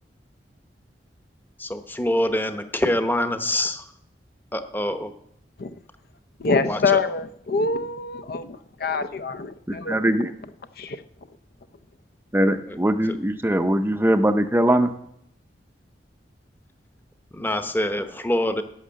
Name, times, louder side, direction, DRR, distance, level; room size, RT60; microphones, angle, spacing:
voice 1, 1.6-3.8 4.5-5.1 6.6-7.0 12.7-12.8 17.3-18.6, left 1 dB, 10° left, 9 dB, 0.9 m, -25 dB
voice 2, 6.4-10.2 10.8-11.0, left 4 dB, 60° left, 12 dB, 0.6 m, -25 dB
voice 3, 9.7-10.3 12.3-14.9, right 1 dB, 15° right, 9 dB, 0.5 m, -21 dB
11.5 x 6.5 x 8.6 m, 0.73 s
head